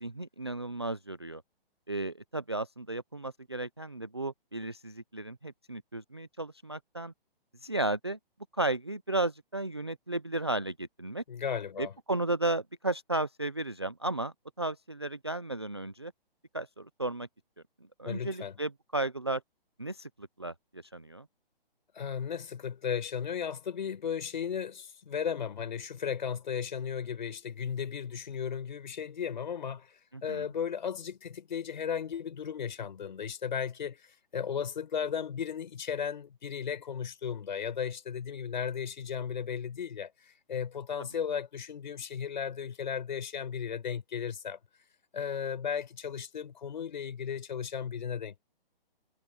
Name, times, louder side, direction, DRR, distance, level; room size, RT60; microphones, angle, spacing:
voice 1, 0.0-1.4 1.9-7.1 7.6-8.2 8.6-11.2 11.8-16.1 16.5-17.3 18.0-19.4 19.8-21.3 30.1-30.5 41.0-41.1, right 2 dB, 30° right, 0.3 m, -34 dB
voice 2, 11.3-11.9 18.0-18.5 21.9-44.6 45.1-48.4, left 7 dB, 50° left, 5.8 m, -35 dB
hypercardioid pair, 175°, 29 cm